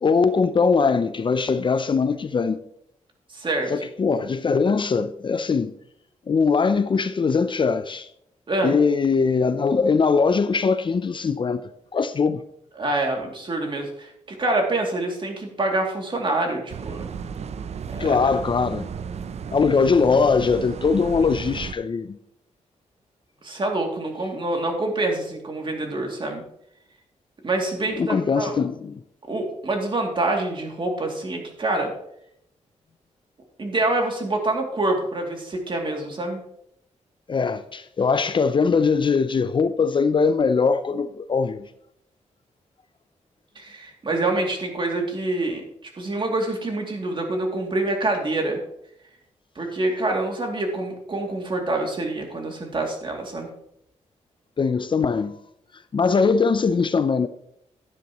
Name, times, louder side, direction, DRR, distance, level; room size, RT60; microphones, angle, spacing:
voice 1, 0.0-2.6 3.7-5.7 6.3-8.1 8.6-11.6 11.9-12.4 18.0-18.9 19.5-22.2 28.0-29.0 37.3-41.7 54.6-55.4 55.9-57.3, left 5 dB, 40° left, 0.5 m, -21 dB
voice 2, 3.3-3.7 8.5-8.8 12.8-17.1 17.9-18.1 23.4-26.4 27.4-28.5 29.3-31.9 33.6-36.4 43.6-48.6 49.6-53.5, right 2 dB, 40° right, 2.6 m, -26 dB
sound 1, 16.7-21.7, right 7 dB, 60° right, 0.6 m, -34 dB
12.0 x 10.0 x 3.0 m
cardioid pair, 85°, 13 cm